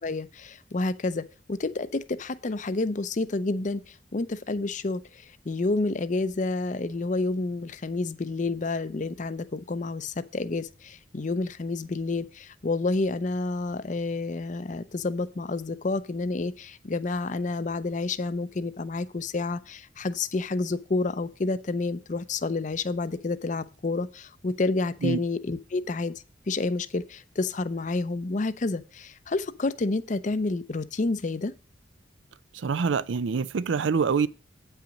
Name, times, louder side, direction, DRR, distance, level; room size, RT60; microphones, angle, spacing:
voice 1, 0.0-26.1 26.5-31.5, left 3 dB, 40° left, 0.6 m, -29 dB
voice 2, 32.5-34.3, right 5 dB, 85° right, 0.4 m, -25 dB
8.9 x 5.7 x 5.2 m
head